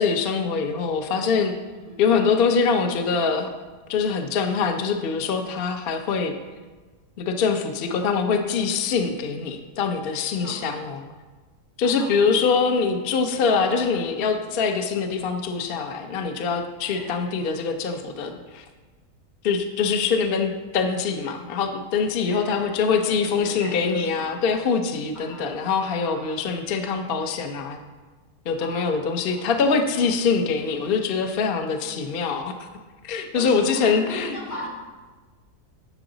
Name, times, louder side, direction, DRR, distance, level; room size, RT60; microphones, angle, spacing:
voice 1, 0.0-1.5 2.0-3.5 3.9-6.3 7.2-11.0 11.8-18.6 19.4-27.8 28.5-32.7 33.0-34.4, left 5 dB, 55° left, 6 dB, 0.7 m, -24 dB
voice 2, 1.7-2.0 10.4-10.8 11.8-12.4 13.5-13.9 16.9-17.2 22.3-24.4 25.1-25.5 26.0-26.4 28.6-29.5 29.8-30.1 33.3-34.7, left 1 dB, 85° left, -6 dB, 3.1 m, -39 dB
11.0 x 6.2 x 3.9 m, 1.3 s
omnidirectional pair, 1.7 m